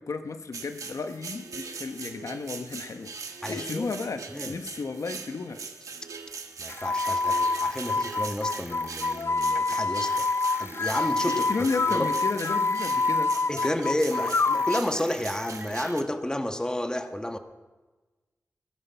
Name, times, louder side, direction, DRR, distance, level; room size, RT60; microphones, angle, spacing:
voice 1, 0.0-5.6 11.3-13.4, left 4 dB, 70° left, 8 dB, 1.0 m, -33 dB
sound 1, 0.5-16.0, right 5 dB, 90° right, 1.3 m, -41 dB
voice 2, 3.4-3.9 4.3-4.6 6.6-10.2 10.6-11.4 11.9-12.1 13.5-17.4, left 1 dB, 15° left, 7 dB, 1.4 m, -31 dB
sound 2, 6.7-14.9, left 3 dB, 50° left, 0.4 m, -27 dB
sound 3, 6.7-13.3 13.5-15.9, right 2 dB, 35° right, 0.7 m, -45 dB
18.5 x 12.5 x 5.7 m, 1.2 s
wide cardioid pair, 65°, 6 cm